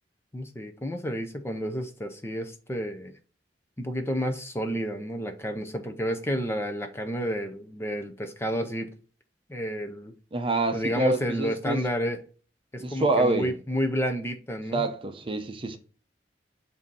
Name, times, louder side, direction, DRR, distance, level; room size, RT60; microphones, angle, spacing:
voice 1, 0.3-3.1 3.8-8.9 9.5-10.1 10.7-12.2 12.7-14.8, equal, 15° left, 0.6 m, -30 dB
voice 2, 10.3-11.8 12.8-13.5 14.7-15.8, right 2 dB, 30° right, 0.7 m, -27 dB
7.6 x 2.7 x 5.3 m
head